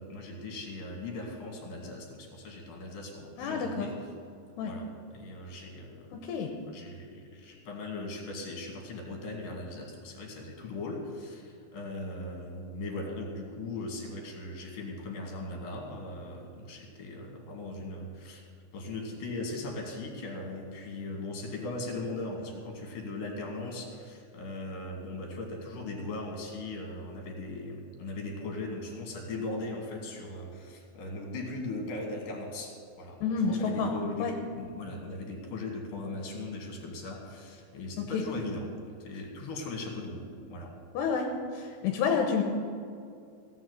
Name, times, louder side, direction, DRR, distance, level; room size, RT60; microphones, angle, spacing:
voice 1, 0.0-4.1 4.6-6.2 6.6-34.3 34.5-40.2 40.5-40.7, left 2 dB, 55° left, 1 dB, 3.8 m, -39 dB
voice 2, 3.4-3.9 4.6-4.7 6.1-6.5 33.2-33.9 34.2-34.3 38.0-38.2 40.9-41.3 41.5-42.4, left 5 dB, 80° left, 3 dB, 3.1 m, -29 dB
16.5 x 7.7 x 8.2 m, 2.4 s
omnidirectional pair, 4.9 m